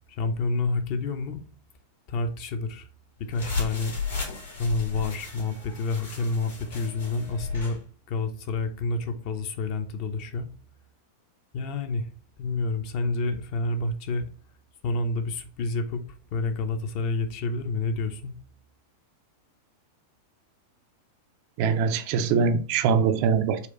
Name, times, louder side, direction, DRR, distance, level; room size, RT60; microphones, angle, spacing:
voice 1, 0.1-1.4 2.1-2.9 3.2-3.9 4.6-7.8 8.1-10.5 11.5-12.1 12.4-14.3 14.8-18.3, left 3 dB, 45° left, 0.6 m, -29 dB
sound 1, 3.3-7.8, left 4 dB, 70° left, 1.5 m, -34 dB
voice 2, 21.6-23.7, right 6 dB, 45° right, 0.4 m, -23 dB
4.2 x 2.3 x 4.0 m
figure-of-eight pair, 90°, 0 cm